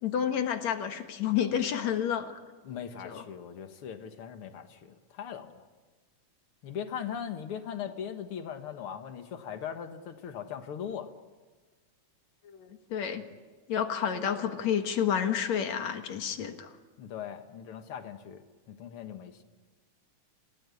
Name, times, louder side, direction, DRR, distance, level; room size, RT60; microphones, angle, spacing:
voice 1, 0.0-2.3 3.0-3.2 12.4-13.2 13.7-16.7, left 8 dB, 70° left, 7 dB, 2.8 m, -30 dB
voice 2, 2.6-5.7 6.6-11.1 17.0-18.4 18.7-19.4, left 8 dB, 55° left, 8 dB, 2.2 m, -39 dB
29.0 x 18.0 x 9.8 m, 1.4 s
omnidirectional pair, 3.3 m